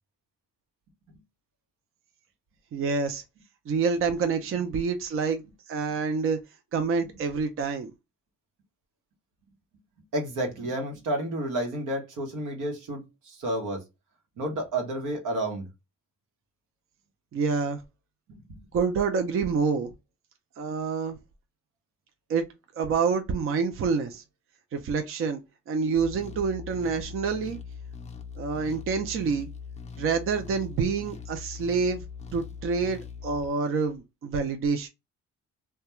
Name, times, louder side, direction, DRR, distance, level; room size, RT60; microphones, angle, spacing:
voice 1, 2.7-3.2 3.7-6.4 6.7-7.9 17.3-17.8 18.7-19.9 20.6-21.2 22.3-22.4 22.8-24.2 24.7-25.4 25.7-27.6 28.4-29.5 30.0-32.0 32.3-34.9, right 5 dB, 45° right, 0.5 m, -27 dB
voice 2, 10.1-13.8 14.4-15.7 18.3-18.6, right 1 dB, 85° right, 1.0 m, -31 dB
sound 1, 25.9-33.5, left 6 dB, 25° left, 0.5 m, -41 dB
2.3 x 2.2 x 2.9 m
cardioid pair, 90°, 30 cm